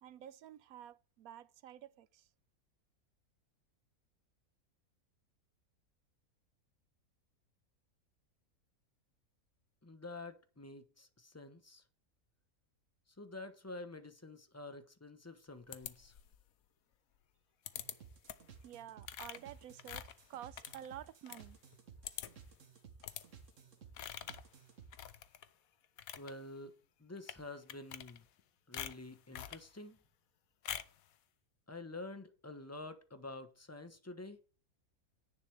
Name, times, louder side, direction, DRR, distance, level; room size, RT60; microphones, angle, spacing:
voice 1, 0.0-2.3 18.6-21.6, right 11 dB, 75° right, 1.1 m, -51 dB
voice 2, 9.8-11.8 13.2-16.1 26.1-26.7 27.0-28.2 28.7-30.0 31.7-34.4, left 2 dB, 10° left, 0.9 m, -48 dB
sound 1, 15.7-16.4 17.7-17.9 18.3-18.6 19.0-21.4 21.7-21.8 22.0-22.5 23.0-23.2 23.9-24.5 24.9-25.5 25.8-26.3 27.2-27.4 27.7-28.4 28.7-29.7 30.6-31.0, left 10 dB, 75° left, 1.2 m, -45 dB
sound 2, 17.8-25.0, right 6 dB, 60° right, 1.6 m, -57 dB
10.5 x 9.8 x 3.4 m
omnidirectional pair, 1.5 m